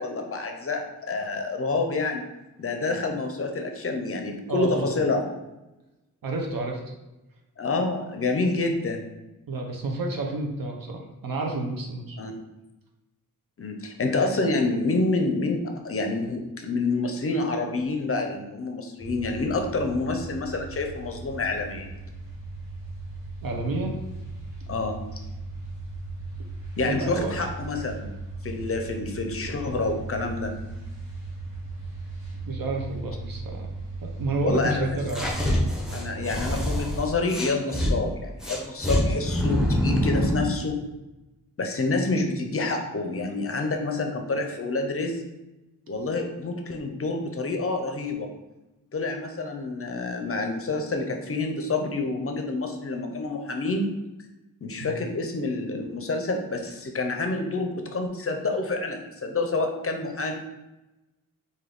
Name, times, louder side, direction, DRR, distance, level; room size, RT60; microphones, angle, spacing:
voice 1, 0.0-2.2 2.6-5.2 7.6-9.1 12.2-12.3 13.6-21.9 24.7-25.0 26.8-28.1 28.4-30.5 34.4-35.0 35.9-40.8 41.6-45.2 45.9-48.3 48.9-53.9 54.6-60.3, left 3 dB, 40° left, 4 dB, 0.5 m, -28 dB
voice 2, 4.5-4.9 6.2-6.8 9.5-12.2 23.4-23.9 26.8-27.4 32.5-33.7 34.0-35.3 54.8-55.0, right 2 dB, 80° right, 1 dB, 0.7 m, -30 dB
sound 1, 19.0-37.0, right 2 dB, 60° right, 1.4 m, -37 dB
sound 2, 35.1-37.9 38.4-40.5, left 1 dB, ahead, 0.6 m, -25 dB
3.4 x 2.6 x 3.8 m, 0.99 s
wide cardioid pair, 125°, 34 cm